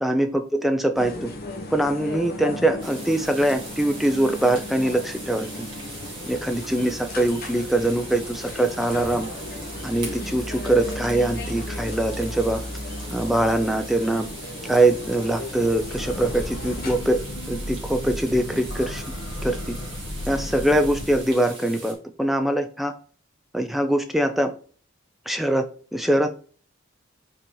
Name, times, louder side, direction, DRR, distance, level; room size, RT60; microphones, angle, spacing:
voice 1, 0.0-1.3 1.7-5.7 6.3-9.3 9.8-12.6 13.1-14.3 14.7-17.2 17.5-19.0 19.4-19.7 20.3-22.9 23.5-24.5 25.3-25.6 25.9-26.3, right 1 dB, ahead, 6 dB, 0.5 m, -23 dB
sound 1, 0.9-16.9, left 2 dB, 45° left, 1.3 m, -35 dB
sound 2, 2.8-21.9, right 2 dB, 25° right, 2.4 m, -41 dB
Breathing / Train, 15.7-21.4, left 1 dB, 60° left, 1.6 m, -34 dB
5.5 x 4.2 x 5.5 m, 0.42 s
head